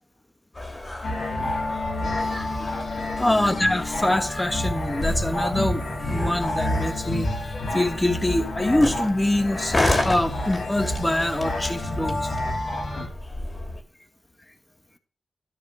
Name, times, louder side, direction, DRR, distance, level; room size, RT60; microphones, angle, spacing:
sound 1, 0.5-13.8, left 2 dB, 35° left, 2.6 m, -32 dB
sound 2, 1.0-13.1, left 1 dB, 70° left, 2.9 m, -29 dB
voice 1, 2.2-12.3, left 1 dB, 15° left, 7 dB, 1.3 m, -25 dB
12.5 x 4.3 x 6.7 m, 0.41 s
cardioid pair, 50°, 0 cm